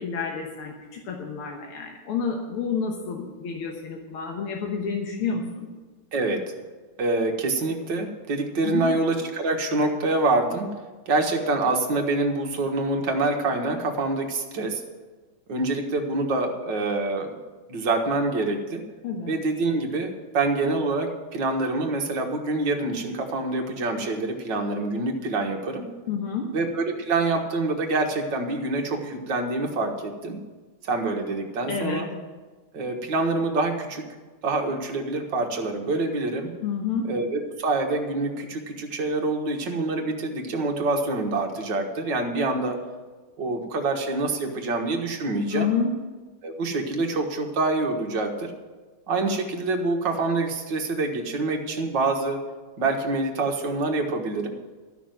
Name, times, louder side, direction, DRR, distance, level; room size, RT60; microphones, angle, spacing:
voice 1, 0.0-5.7 8.6-8.9 19.0-19.3 26.1-26.5 31.7-32.1 36.6-37.1 45.5-45.9, left 6 dB, 85° left, 0 dB, 2.1 m, -29 dB
voice 2, 6.1-6.4 7.0-10.7 11.1-14.8 15.5-17.3 17.7-18.8 19.3-25.9 26.5-30.4 30.8-32.1 32.7-34.0 34.4-36.5 37.1-42.8 43.4-45.7 46.4-48.5 49.1-52.4 52.8-54.5, right 2 dB, 60° right, 3 dB, 1.9 m, -26 dB
13.0 x 6.1 x 9.0 m, 1.3 s
omnidirectional pair, 2.3 m